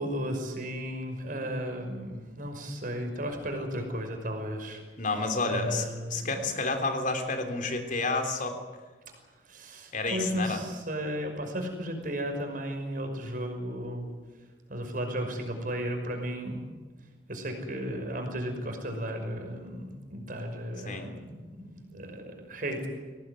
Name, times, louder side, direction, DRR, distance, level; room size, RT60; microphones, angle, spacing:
voice 1, 0.0-4.8 5.5-6.5 9.5-14.1 14.7-16.6 17.3-22.9, equal, 50° right, 5 dB, 5.8 m, -34 dB
voice 2, 5.0-5.8 6.1-8.6 9.9-10.6 20.8-21.1, left 3 dB, 45° left, 5 dB, 3.4 m, -30 dB
23.5 x 18.5 x 9.8 m, 1.4 s
head